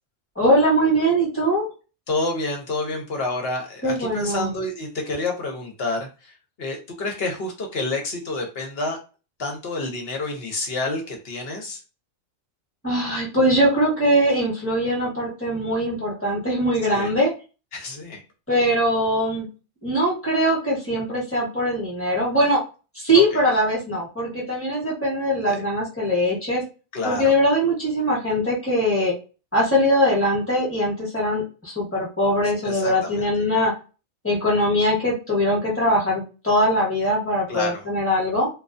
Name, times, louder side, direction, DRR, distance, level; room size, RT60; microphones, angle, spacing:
voice 1, 0.4-1.7 3.8-4.5 12.8-17.3 18.5-19.5 19.8-22.6 22.9-26.6 27.0-29.1 29.5-33.7 34.2-38.5, equal, 10° left, -5 dB, 0.9 m, -21 dB
voice 2, 2.1-9.0 9.4-11.8 16.8-17.1 17.7-18.2 23.1-23.4 25.5-25.6 26.9-27.3 32.6-33.3 37.5-37.9, left 2 dB, 55° left, 2 dB, 0.8 m, -29 dB
2.3 x 2.2 x 2.5 m, 0.33 s
omnidirectional pair, 1.4 m